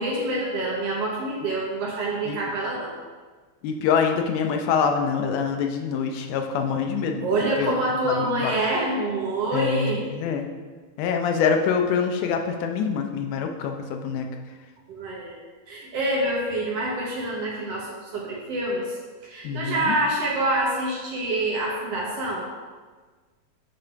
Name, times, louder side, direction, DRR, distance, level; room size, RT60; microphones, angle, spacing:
voice 1, 0.0-2.9 7.2-10.0 14.9-15.3 15.7-18.9 19.2-22.4, right 1 dB, 65° right, -3 dB, 1.7 m, -26 dB
voice 2, 3.6-7.3 7.6-7.8 8.1-8.5 9.5-10.4 11.0-14.3 19.4-20.0, left 6 dB, 90° left, 4 dB, 2.2 m, -25 dB
9.0 x 3.3 x 4.5 m, 1.4 s
omnidirectional pair, 3.5 m